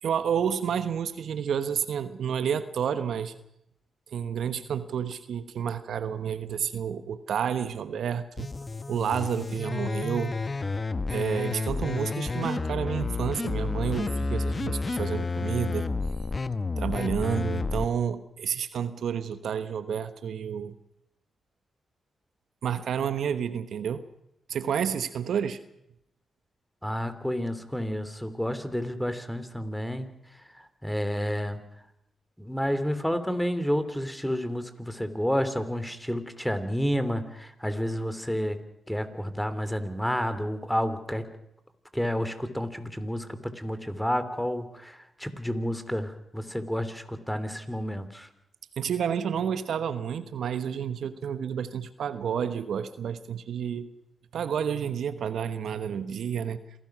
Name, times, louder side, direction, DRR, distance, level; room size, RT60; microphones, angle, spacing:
voice 1, 0.0-3.3 4.1-8.5 8.9-10.3 11.1-15.9 16.8-20.7 22.6-24.0 24.5-25.6 48.8-53.9 54.3-56.6, right 8 dB, 75° right, 12 dB, 1.1 m, -30 dB
sound 1, 8.4-17.9, left 3 dB, 40° left, 1.1 m, -30 dB
voice 2, 26.8-31.6 32.4-38.6 38.9-41.2 41.9-48.3, equal, 5° left, 11 dB, 3.3 m, -30 dB
27.0 x 17.0 x 6.1 m, 0.79 s
supercardioid pair, 45°, 0 cm